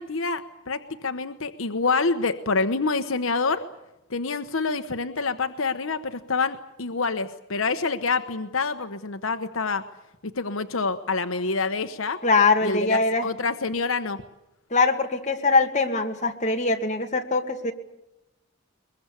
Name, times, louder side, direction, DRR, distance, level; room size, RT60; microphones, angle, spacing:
voice 1, 0.0-3.7 4.1-9.9 10.4-12.2 12.6-14.2, left 4 dB, 75° left, 8 dB, 1.1 m, -27 dB
voice 2, 12.2-13.3 14.7-17.7, left 3 dB, 35° left, 3 dB, 2.3 m, -22 dB
22.5 x 22.0 x 8.3 m, 0.93 s
head